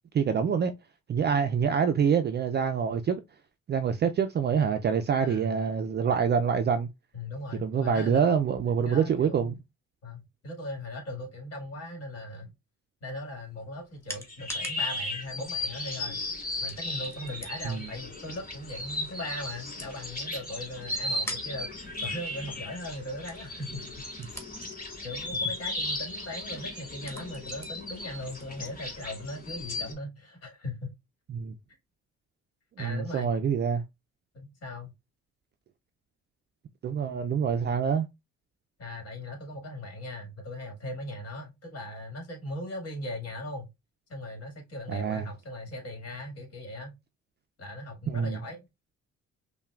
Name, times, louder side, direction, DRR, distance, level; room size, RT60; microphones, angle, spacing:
voice 1, 0.1-0.7 1.1-3.2 3.7-6.9 7.6-9.5 17.6-17.9 31.3-31.5 32.8-33.8 36.8-38.1 44.9-45.3 48.1-48.4, right 7 dB, 35° right, 0.4 m, -26 dB
voice 2, 5.2-5.6 7.1-8.5 8.8-9.6 10.0-12.5 13.0-16.2 16.6-24.2 24.7-30.9 32.8-33.3 34.3-34.9 38.8-43.7 44.1-46.9 47.6-48.7, left 1 dB, 55° left, 1.8 m, -39 dB
sound 1, 13.3-29.7, left 1 dB, 10° left, 1.2 m, -49 dB
sound 2, 14.2-29.9, left 2 dB, 30° left, 2.1 m, -36 dB
5.5 x 2.2 x 2.3 m
cardioid pair, 90°, 30 cm